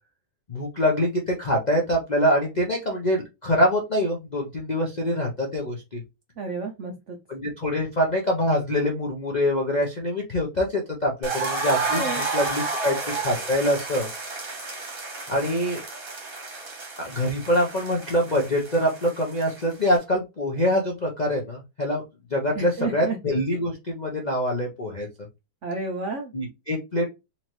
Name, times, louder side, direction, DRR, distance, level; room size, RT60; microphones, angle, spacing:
voice 1, 0.5-6.0 7.3-14.1 15.3-15.8 17.0-22.0 22.3-25.1 26.3-27.1, equal, 55° left, -2 dB, 0.4 m, -25 dB
voice 2, 6.4-7.2 11.9-12.2 22.6-23.2 25.6-26.3, right 3 dB, 75° right, 3 dB, 0.7 m, -31 dB
sound 1, 11.2-20.0, right 3 dB, 35° right, 1.1 m, -31 dB
4.3 x 2.8 x 3.0 m, 0.24 s
omnidirectional pair, 2.0 m